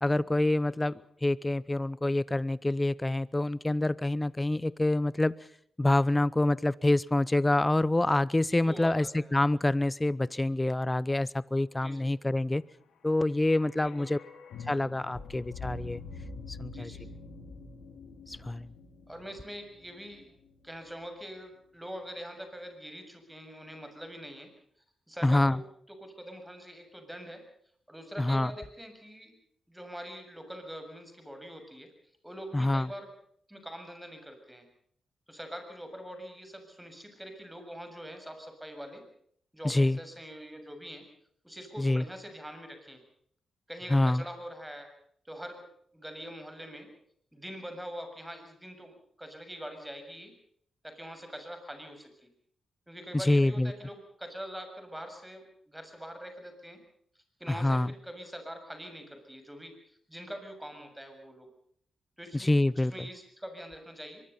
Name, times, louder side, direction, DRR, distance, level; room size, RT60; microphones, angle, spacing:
voice 1, 0.0-0.9 1.2-5.3 5.8-12.6 13.0-14.2 14.7-16.0 16.5-16.9 18.3-18.7 25.2-25.6 28.2-28.5 32.5-32.9 39.6-40.0 41.8-42.0 43.9-44.2 53.1-53.7 57.5-57.9 62.3-63.1, left 2 dB, 15° left, 20 dB, 0.8 m, -26 dB
voice 2, 0.6-0.9 8.6-9.4 11.8-12.0 13.8-14.1 16.7-17.1 19.1-20.3 20.6-24.5 25.1-25.6 26.0-27.4 27.9-29.3 29.7-31.9 32.2-33.1 33.5-34.7 35.3-39.0 39.5-41.0 41.4-43.0 43.7-44.9 45.3-45.7 45.9-46.9 47.3-50.3 50.8-52.3 52.9-56.8 57.4-61.5 62.2-64.2, equal, 5° right, 6 dB, 7.1 m, -44 dB
sound 1, 12.8-20.9 21.2-21.3, left 3 dB, 85° left, 4.9 m, -46 dB
24.0 x 22.0 x 5.6 m, 0.63 s
cardioid pair, 75°, 0 cm